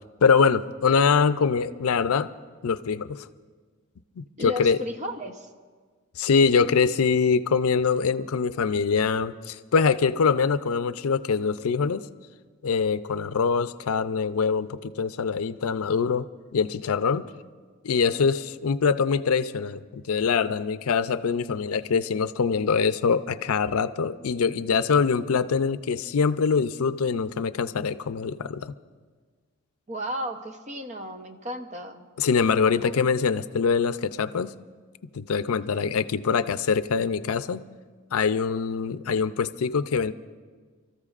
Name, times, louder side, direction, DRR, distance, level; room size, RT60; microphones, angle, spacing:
voice 1, 0.2-2.3 2.6-3.3 4.2-4.8 6.2-12.0 12.6-16.3 16.5-17.3 17.8-28.7 32.2-34.5 35.1-37.6 38.1-40.1, left 5 dB, 85° left, 13 dB, 0.5 m, -24 dB
voice 2, 4.4-5.5 29.9-32.1 32.6-32.9 35.6-35.7, equal, 30° right, 6 dB, 0.8 m, -34 dB
29.5 x 14.0 x 2.5 m, 1.5 s
head